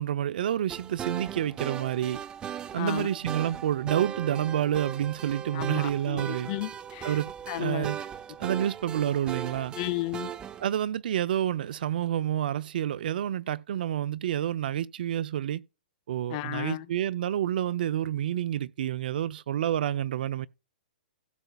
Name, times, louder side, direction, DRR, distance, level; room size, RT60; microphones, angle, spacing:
voice 1, 0.0-2.2 2.7-6.5 7.0-8.0 8.4-9.7 10.6-15.6 16.1-20.5, right 11 dB, 65° right, 0.5 m, -29 dB
sound 1, 0.7-10.7, right 9 dB, 15° right, 0.5 m, -38 dB
voice 2, 2.7-3.1 5.5-7.2 7.5-7.9 9.8-10.3 16.3-16.9, left 17 dB, 40° left, 0.6 m, -33 dB
16.5 x 6.7 x 2.3 m
hypercardioid pair, 140°, 5 cm